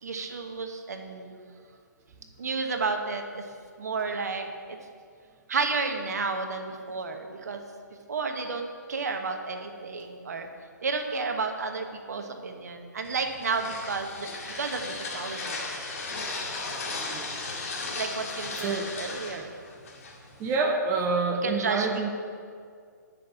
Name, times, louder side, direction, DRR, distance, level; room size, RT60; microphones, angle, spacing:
voice 1, 0.0-1.3 2.4-3.4 3.8-4.8 5.5-7.6 8.1-10.5 10.8-15.6 15.9-16.0 17.9-19.6 21.4-21.9, right 4 dB, 55° right, 5 dB, 1.3 m, -32 dB
sound 1, 13.0-20.6, left 3 dB, 50° left, 2.3 m, -36 dB
voice 2, 16.9-17.3 18.6-18.9 19.2-19.3 20.4-22.1, right 3 dB, 20° right, 2 dB, 0.9 m, -28 dB
11.0 x 6.3 x 8.0 m, 2.2 s
figure-of-eight pair, 130°, 10 cm